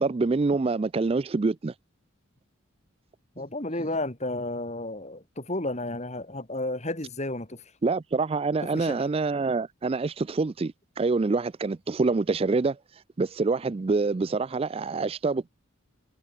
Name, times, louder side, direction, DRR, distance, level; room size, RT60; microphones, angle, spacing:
voice 1, 0.0-1.7 7.8-12.8 13.2-15.5, right 3 dB, 25° right, 0.3 m, -26 dB
voice 2, 3.4-7.6 8.6-9.0, left 2 dB, 30° left, 2.8 m, -32 dB
head